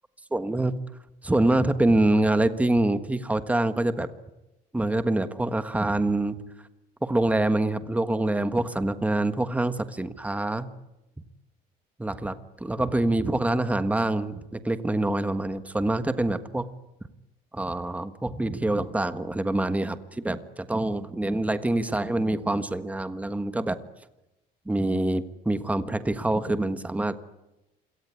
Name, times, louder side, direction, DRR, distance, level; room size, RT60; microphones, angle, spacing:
voice 1, 0.3-0.8 1.2-4.1 4.7-6.4 7.0-10.7 12.0-16.7 17.5-23.8 24.7-27.2, right 2 dB, 10° right, 11 dB, 1.5 m, -25 dB
27.5 x 18.0 x 9.8 m, 0.96 s
cardioid pair, 110°, 17 cm